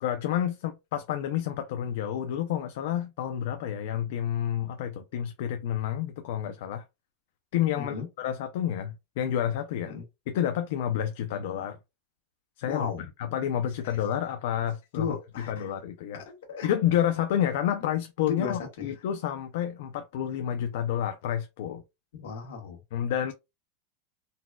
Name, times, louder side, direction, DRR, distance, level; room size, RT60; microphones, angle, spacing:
voice 1, 0.0-6.8 7.5-9.9 10.3-11.8 12.6-12.9 13.2-15.1 15.4-16.2 16.6-21.8 22.9-23.3, left 10 dB, 70° left, 0.4 m, -29 dB
voice 2, 7.7-8.1 9.8-10.0 12.6-13.0 14.9-15.7 16.3-16.7 18.4-18.9 22.2-22.8, left 6 dB, 85° left, 1.4 m, -35 dB
4.0 x 2.3 x 2.2 m
supercardioid pair, 145°, 0 cm